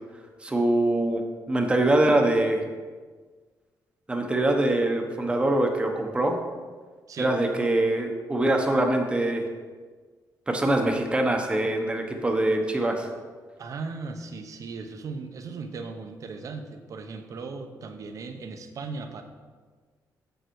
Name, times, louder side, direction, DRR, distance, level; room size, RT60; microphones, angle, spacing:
voice 1, 0.4-1.2 1.5-2.6 4.1-6.4 7.2-9.4 10.5-13.1, right 1 dB, 15° right, 3 dB, 0.9 m, -23 dB
voice 2, 13.6-19.2, right 4 dB, 50° right, 6 dB, 0.8 m, -37 dB
7.5 x 6.9 x 4.6 m, 1.5 s
wide cardioid pair, 145°, 7 cm